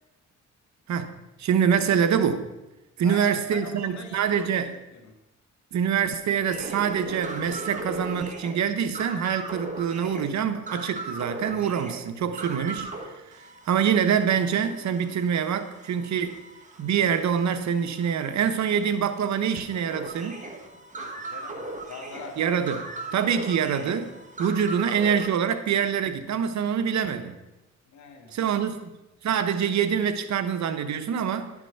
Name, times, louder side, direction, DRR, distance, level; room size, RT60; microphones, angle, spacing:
voice 1, 1.4-2.5 3.0-4.7 5.7-16.4 16.8-20.4 22.4-22.8 23.1-24.1 24.4-27.4 28.3-28.9 29.2-31.5, right 7 dB, 70° right, 9 dB, 1.0 m, -25 dB
voice 2, 3.0-4.7 4.9-5.2 21.0-22.4 27.9-28.4, left 4 dB, 75° left, 3 dB, 1.7 m, -43 dB
sound 1, 6.5-13.0 13.3-25.3, right 2 dB, 25° right, 1.7 m, -39 dB
11.0 x 6.0 x 5.8 m, 0.98 s
cardioid pair, 85°, 29 cm